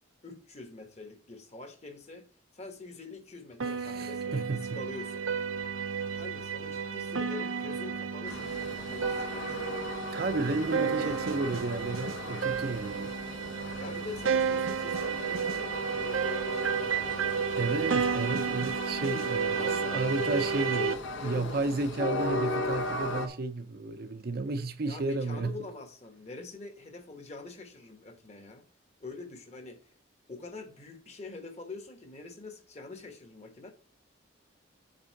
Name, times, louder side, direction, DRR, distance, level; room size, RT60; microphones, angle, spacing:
voice 1, 0.2-2.3 2.5-5.3 6.1-9.7 10.8-11.2 13.8-18.3 19.5-21.7 24.8-28.7 29.0-29.9 30.3-33.7, left 3 dB, 35° left, 1.1 m, -45 dB
voice 2, 3.6-4.8 10.1-13.1 17.6-21.0 21.2-25.6, right 3 dB, 50° right, 0.6 m, -32 dB
sound 1, 3.6-20.9, right 6 dB, 85° right, 0.7 m, -32 dB
Train, 8.3-23.3, left 2 dB, 70° left, 0.9 m, -38 dB
8.0 x 3.6 x 6.5 m
head